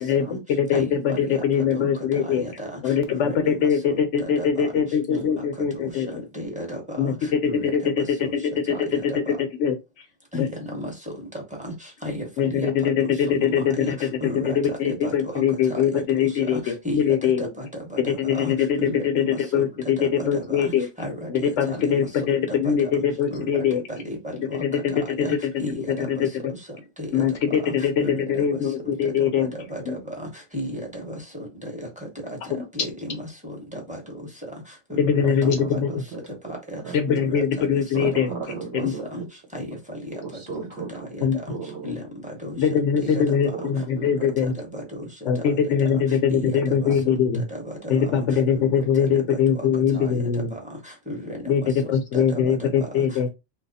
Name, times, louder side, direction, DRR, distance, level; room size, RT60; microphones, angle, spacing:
voice 1, 0.0-2.5 2.8-6.1 7.0-9.8 10.3-10.5 12.4-17.5 18.0-20.9 21.3-23.8 24.5-26.3 27.1-29.5 29.9-30.0 32.5-32.6 35.0-36.0 36.9-38.3 38.7-38.9 41.2-41.4 42.6-44.5 45.3-47.4 47.9-50.5 51.5-53.3, left 7 dB, 70° left, 0.9 m, -22 dB
voice 2, 0.7-1.9 2.2-2.8 3.1-4.8 5.1-5.2 5.6-5.9 6.3-7.2 7.4-7.7 8.2-8.3 8.9-9.2 10.3-10.9 11.6-11.7 12.0-12.2 12.5-12.7 13.0-13.1 13.5-13.6 14.2-15.1 16.2-17.0 17.4-17.7 17.9-18.0 18.3-18.5 18.8-20.6 21.0-22.0 22.5-22.9 23.3-23.6 24.0-24.6 24.9-25.3 25.6-26.1 27.0-27.2 28.0-28.5 28.8-28.9 29.7-29.8 30.5-31.1 31.4-31.9 32.7-33.2 33.7-34.0 34.9-35.2 35.4-36.0 36.7-36.8 37.1-37.6 38.0-38.1 38.8-39.2 39.5-39.7 41.5-41.6 41.8-42.0 42.4-42.5 43.0-43.4 44.0-44.1 44.7-44.8 46.3-46.9 47.6-47.7 48.5-48.7 49.1-49.2 49.9-50.2 50.5-50.6 51.1-51.5 52.1-52.4, equal, 5° right, 0.9 m, -34 dB
voice 3, 35.2-36.2 36.8-37.0 37.9-39.0 40.2-41.1 41.5-41.9 43.2-43.8 44.2-44.3 44.7-44.8 46.8-46.9, right 5 dB, 65° right, 0.9 m, -35 dB
3.0 x 2.3 x 4.0 m
omnidirectional pair, 1.3 m